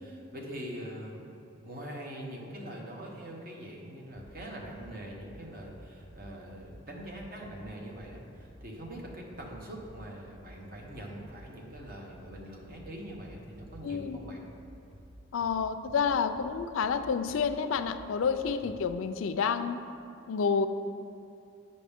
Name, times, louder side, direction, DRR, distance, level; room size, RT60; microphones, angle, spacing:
voice 1, 0.0-14.4, equal, 45° right, -1 dB, 1.0 m, -43 dB
sound 1, 4.1-18.9, equal, 30° right, 0.7 m, -52 dB
voice 2, 13.8-14.2 15.3-19.8 20.3-20.7, left 6 dB, 75° left, 10 dB, 0.4 m, -29 dB
8.5 x 5.4 x 3.5 m, 2.7 s
head